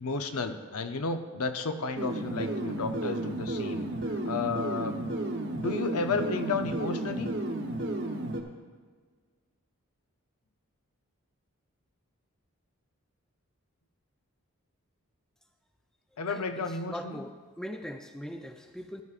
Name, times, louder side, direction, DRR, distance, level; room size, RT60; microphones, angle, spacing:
voice 1, 0.0-3.8 4.2-5.0 5.5-7.3 16.2-17.2, left 4 dB, 90° left, 7 dB, 0.7 m, -32 dB
sound 1, 2.0-8.4, right 1 dB, 55° right, 0.9 m, -33 dB
voice 2, 16.3-19.0, equal, 5° left, 5 dB, 0.4 m, -41 dB
13.5 x 11.0 x 2.5 m, 1.5 s
head